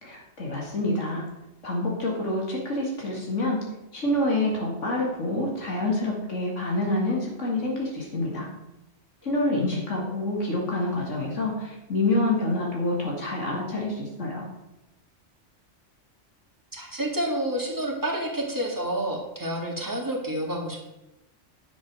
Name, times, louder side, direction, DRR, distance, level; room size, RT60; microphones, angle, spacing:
voice 1, 0.0-1.2 1.6-3.6 3.9-8.5 9.2-14.5, left 2 dB, 80° left, -2 dB, 2.5 m, -27 dB
voice 2, 16.7-20.8, right 1 dB, 15° right, -1 dB, 2.2 m, -29 dB
10.5 x 7.2 x 6.2 m, 0.92 s
omnidirectional pair, 1.2 m